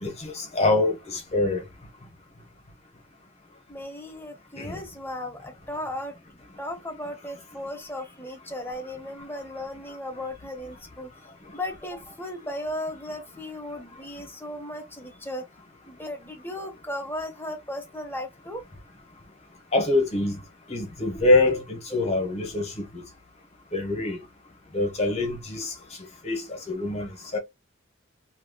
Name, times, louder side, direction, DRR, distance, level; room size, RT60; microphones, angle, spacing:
voice 1, 0.0-1.6 4.6-4.8 19.7-20.4 20.7-22.8 23.7-24.2 24.7-25.7 26.2-27.4, left 2 dB, 30° left, 1.1 m, -25 dB
voice 2, 3.7-11.3 11.5-15.4 15.9-18.7, left 1 dB, 10° left, 1.0 m, -36 dB
3.0 x 2.9 x 2.2 m
head